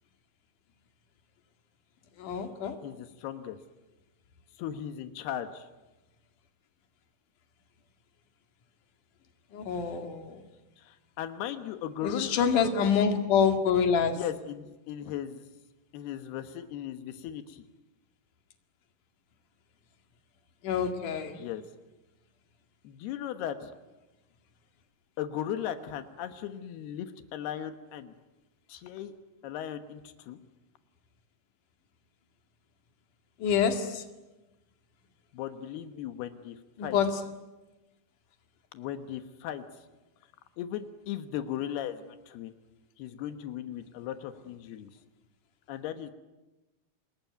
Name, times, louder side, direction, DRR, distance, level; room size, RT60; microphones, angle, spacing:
voice 1, 2.2-2.8 9.5-10.4 12.0-14.2 20.6-21.4 33.4-34.0 36.8-37.1, left 7 dB, 60° left, 5 dB, 3.5 m, -26 dB
voice 2, 2.8-3.6 4.6-5.7 10.8-12.4 14.1-15.4 15.9-17.6 21.4-21.6 22.8-23.7 25.2-28.1 28.7-29.1 29.4-30.4 35.3-36.6 36.8-37.0 38.7-39.6 40.6-42.5 43.0-44.9 45.7-46.1, left 10 dB, 90° left, 9 dB, 3.2 m, -37 dB
28.0 x 21.0 x 9.3 m, 1.1 s
omnidirectional pair, 4.4 m